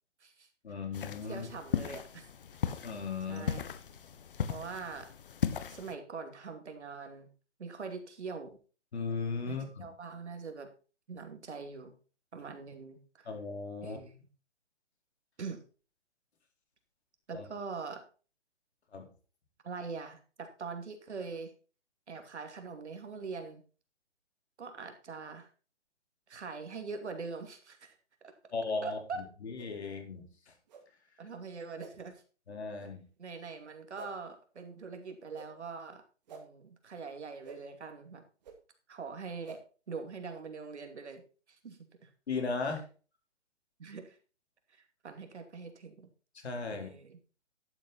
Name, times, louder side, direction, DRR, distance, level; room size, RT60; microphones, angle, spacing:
voice 1, 0.6-1.5 2.8-3.5 8.9-9.9 13.3-14.0 17.3-17.4 18.9-19.1 28.5-29.0 29.4-30.2 32.5-33.0 42.3-42.8 46.3-46.9, left 4 dB, 65° left, 3 dB, 4.0 m, -36 dB
sound 1, 0.9-5.9, left 8 dB, 50° left, 1.2 m, -37 dB
voice 2, 1.3-2.2 3.3-3.6 4.5-5.1 5.7-7.3 7.6-8.6 9.5-10.7 11.1-11.9 12.3-13.3 13.8-14.3 15.4-15.6 17.3-18.1 19.6-21.5 22.1-23.6 24.6-25.5 26.3-28.0 28.2-28.3 28.8-29.2 31.2-32.2 33.2-36.0 36.3-38.2 38.9-39.6 39.9-41.2 41.6-42.1 42.6-42.7 43.8-44.2 45.0-46.1 46.7-47.2, right 4 dB, 70° right, 6 dB, 2.6 m, -43 dB
sound 2, 29.6-29.7 30.7-30.8 31.8-31.9 32.8-32.9 33.9-34.1 35.3-35.5 36.3-36.4 37.4-37.6 38.4-38.6 39.4-39.6, right 5 dB, 35° right, 2.3 m, -48 dB
11.5 x 7.6 x 4.2 m, 0.36 s
hypercardioid pair, 155°, 36 cm